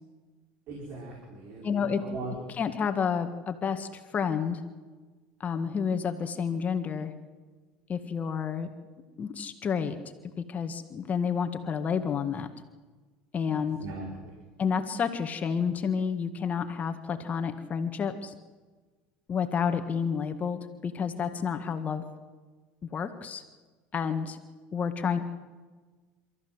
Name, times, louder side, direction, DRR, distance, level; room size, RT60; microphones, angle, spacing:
voice 1, 0.7-2.6 13.5-14.4, right 2 dB, 60° right, -1 dB, 5.7 m, -40 dB
voice 2, 1.6-2.0 2.6-4.6 5.4-7.1 7.9-8.7 9.2-10.0 10.5-12.5 13.3-13.8 14.6-18.3 19.3-22.0 22.9-23.4 23.9-24.4 24.7-25.2, left 6 dB, 35° left, 7 dB, 1.8 m, -30 dB
29.0 x 14.0 x 8.1 m, 1.3 s
hypercardioid pair, 90°, 4 cm